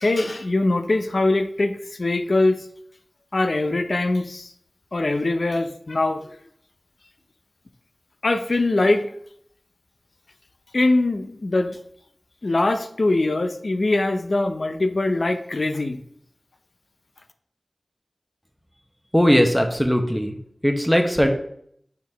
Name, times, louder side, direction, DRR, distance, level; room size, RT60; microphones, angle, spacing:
voice 1, 0.0-2.6 3.3-4.5 4.9-6.3 8.2-9.1 10.7-11.8 12.4-16.0, left 2 dB, 65° left, 7 dB, 0.5 m, -22 dB
voice 2, 19.1-20.4 20.6-21.3, equal, 5° left, 4 dB, 1.0 m, -19 dB
5.8 x 4.7 x 3.5 m, 0.68 s
wide cardioid pair, 45°, 0 cm